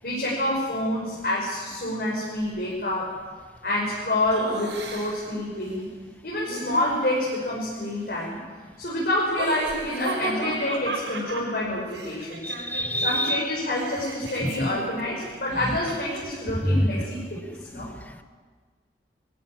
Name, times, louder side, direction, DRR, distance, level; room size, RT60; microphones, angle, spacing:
voice 1, 0.0-3.1 3.6-5.9 6.2-8.4 8.8-12.4 13.0-17.9, left 1 dB, 55° left, -6 dB, 6.1 m, -27 dB
Laughter, 4.3-5.3 6.4-7.4 9.2-13.1 13.4-16.5, right 2 dB, 85° right, 7.7 m, -35 dB
voice 2, 12.4-13.5 14.4-14.7 15.6-16.0 16.6-17.1 17.7-18.2, equal, 10° left, 8 dB, 1.1 m, -27 dB
22.5 x 16.0 x 9.2 m, 1.5 s
head